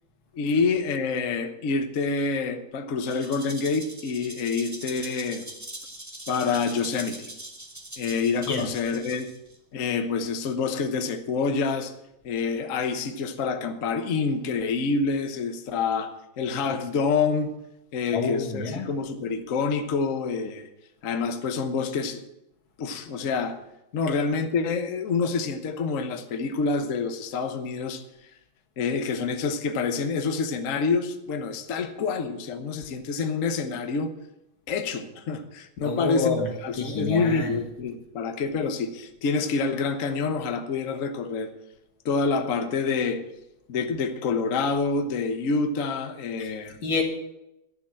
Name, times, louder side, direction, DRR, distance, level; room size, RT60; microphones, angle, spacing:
voice 1, 0.3-5.4 6.3-7.3 8.0-9.3 9.7-11.9 12.2-17.5 17.9-20.7 21.0-22.2 22.8-23.6 23.9-28.0 28.8-34.1 34.7-41.5 42.0-43.2 43.7-46.8, left 4 dB, 50° left, 1.2 m, -27 dB
Rattle (instrument), 3.0-9.6, right 1 dB, 10° right, 1.0 m, -42 dB
voice 2, 18.1-18.9 35.8-36.5 36.8-37.6 46.4-46.5 46.8-47.0, left 4 dB, 80° left, 2.7 m, -27 dB
12.5 x 7.1 x 7.6 m
omnidirectional pair, 2.1 m